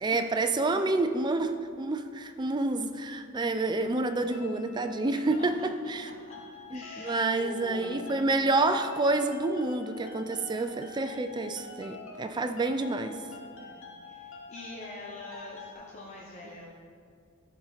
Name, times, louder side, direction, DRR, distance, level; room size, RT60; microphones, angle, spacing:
voice 1, 0.0-6.1 6.7-6.8 7.0-13.2, right 2 dB, 20° right, 8 dB, 0.3 m, -28 dB
sound 1, 4.0-15.7, left 4 dB, 60° left, 1.1 m, -47 dB
voice 2, 6.7-8.3 12.1-12.8 13.3-16.7, left 2 dB, 30° left, -3 dB, 0.7 m, -45 dB
13.0 x 4.3 x 3.9 m, 2.2 s
head